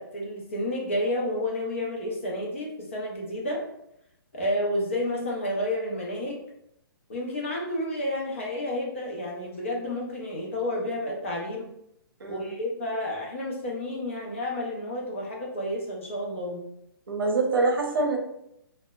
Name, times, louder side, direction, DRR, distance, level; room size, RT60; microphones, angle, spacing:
voice 1, 0.0-3.6 4.3-6.4 7.1-11.7 12.3-16.6, left 1 dB, 30° left, -2 dB, 0.5 m, -30 dB
voice 2, 12.2-12.5 17.1-18.2, right 3 dB, 65° right, 1 dB, 0.7 m, -25 dB
2.7 x 2.0 x 2.2 m, 0.80 s
hypercardioid pair, 180°, 13 cm